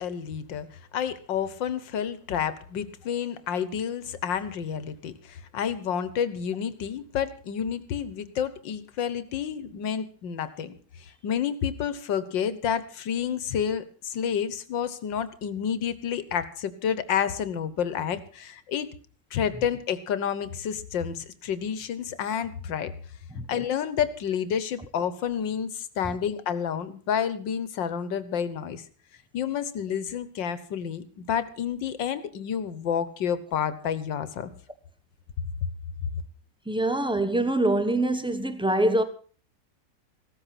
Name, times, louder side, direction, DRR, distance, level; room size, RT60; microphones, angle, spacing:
voice 1, 0.0-18.9 19.3-22.9 23.5-28.8 29.3-34.5, left 8 dB, 90° left, 1.9 m, -30 dB
voice 2, 36.6-39.0, right 1 dB, 5° right, 1.1 m, -24 dB
16.5 x 13.5 x 5.8 m
omnidirectional pair, 1.9 m